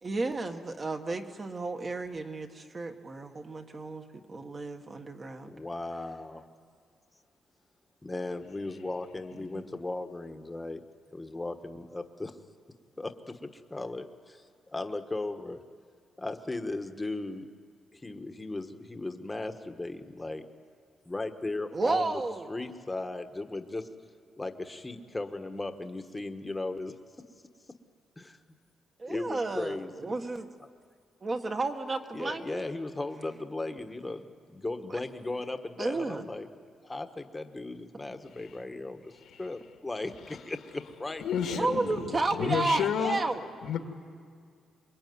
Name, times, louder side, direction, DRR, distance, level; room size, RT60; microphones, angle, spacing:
voice 1, 0.0-5.5 9.5-9.7 21.7-22.5 29.0-30.5 31.2-32.6 34.9-35.0 35.8-36.2 41.5-43.5, right 3 dB, 30° right, 5 dB, 1.7 m, -32 dB
voice 2, 5.4-6.5 8.0-10.8 11.1-12.4 13.0-15.6 16.2-17.5 17.9-20.4 21.0-22.2 22.5-23.9 24.4-26.9 28.2-28.4 29.1-30.1 30.6-30.7 32.1-36.5 36.8-39.1 39.4-41.7, left 2 dB, 15° left, 7 dB, 1.4 m, -37 dB
voice 3, 41.2-43.2 43.6-43.8, left 8 dB, 90° left, 4 dB, 2.4 m, -30 dB
26.5 x 22.5 x 9.6 m, 2.1 s
cardioid pair, 135°, 0 cm